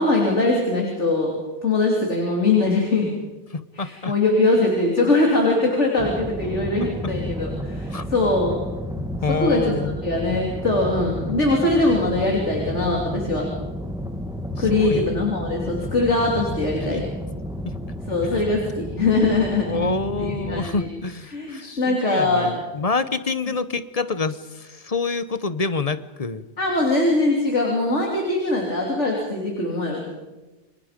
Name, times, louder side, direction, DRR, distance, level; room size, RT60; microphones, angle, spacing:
voice 1, 0.0-1.3 1.6-3.1 3.7-8.6 9.4-9.7 10.0-13.5 14.6-17.0 18.1-19.9 20.2-20.9 21.3-22.6 26.6-30.1, left 2 dB, 85° left, -1 dB, 3.7 m, -22 dB
voice 2, 3.5-4.1 6.8-7.1 7.9-8.1 9.2-9.9 14.6-15.0 16.9-17.0 17.6-17.7 18.2-18.4 19.6-26.4, left 4 dB, 35° left, 14 dB, 1.0 m, -27 dB
sound 1, 6.0-20.7, equal, 5° right, 1.6 m, -31 dB
29.5 x 24.5 x 5.2 m, 1.1 s
omnidirectional pair, 1.2 m